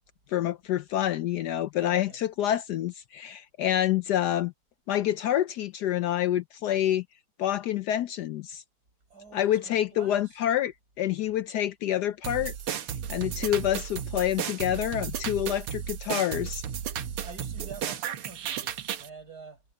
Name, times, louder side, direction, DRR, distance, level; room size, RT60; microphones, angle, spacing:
voice 1, 0.3-4.5 4.9-7.0 7.4-8.6 9.3-12.5 13.1-16.6, left 12 dB, 85° left, 0.9 m, -27 dB
voice 2, 1.8-2.2 9.1-10.4 17.2-19.6, right 4 dB, 45° right, 5.7 m, -47 dB
sound 1, 12.2-19.1, right 9 dB, 80° right, 2.0 m, -34 dB
omnidirectional pair, 2.4 m